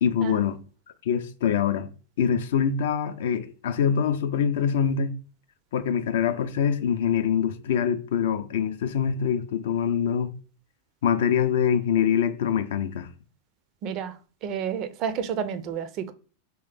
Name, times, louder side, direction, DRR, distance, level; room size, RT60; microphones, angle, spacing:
voice 1, 0.0-0.6 1.0-1.9 2.2-5.1 5.7-10.3 11.0-13.1, left 8 dB, 60° left, 0.3 m, -24 dB
voice 2, 13.8-14.1 14.4-16.1, right 7 dB, 40° right, 0.4 m, -30 dB
3.0 x 2.8 x 3.5 m
figure-of-eight pair, 90°, 0 cm